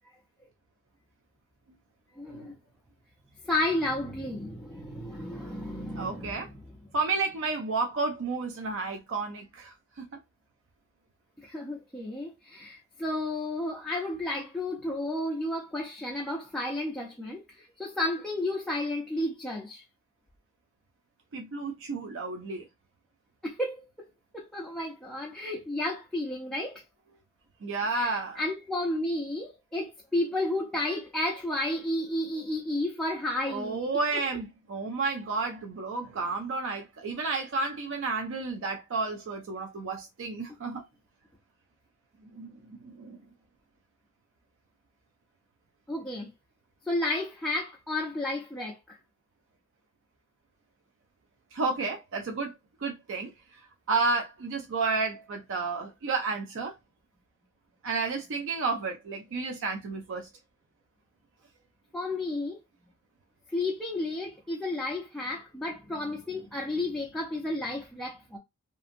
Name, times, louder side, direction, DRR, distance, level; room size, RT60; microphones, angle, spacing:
voice 1, 2.2-2.5 3.4-6.8 11.4-19.8 23.4-24.1 24.3-26.8 27.9-33.9 45.9-46.3 46.9-49.0 61.9-62.6 63.5-68.4, left 1 dB, 5° left, 0.4 m, -32 dB
voice 2, 6.0-6.5 6.9-10.1 21.3-22.6 27.6-28.4 33.5-40.8 42.3-43.2 51.5-52.5 52.8-53.3 53.9-56.7 57.8-60.3, right 3 dB, 60° right, 0.4 m, -31 dB
2.7 x 2.5 x 2.5 m
head